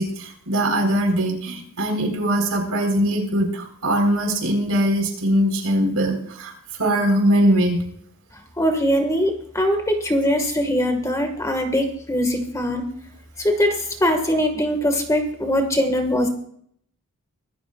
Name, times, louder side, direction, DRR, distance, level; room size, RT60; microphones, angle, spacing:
voice 1, 0.0-6.5 6.8-7.8, right 1 dB, 85° right, 2 dB, 4.3 m, -21 dB
voice 2, 8.6-12.8 13.4-16.3, equal, 15° left, 4 dB, 1.8 m, -21 dB
24.5 x 13.0 x 2.5 m, 0.65 s
head